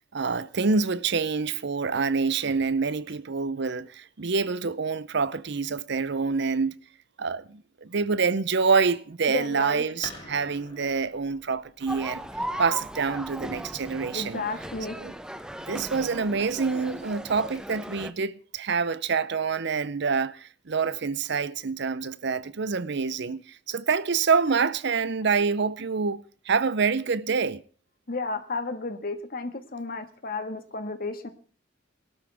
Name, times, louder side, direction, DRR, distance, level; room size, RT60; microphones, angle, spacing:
voice 1, 0.1-6.7 7.2-12.3 12.6-14.4 15.0-15.1 15.7-27.6, right 5 dB, 65° right, 0.7 m, -26 dB
voice 2, 9.3-9.8 14.1-15.0 28.1-31.3, left 3 dB, 50° left, 1.6 m, -32 dB
sound 1, 10.0-15.5, left 2 dB, 25° left, 3.1 m, -48 dB
sound 2, 11.9-18.1, equal, 5° right, 0.8 m, -37 dB
21.5 x 12.5 x 3.5 m
head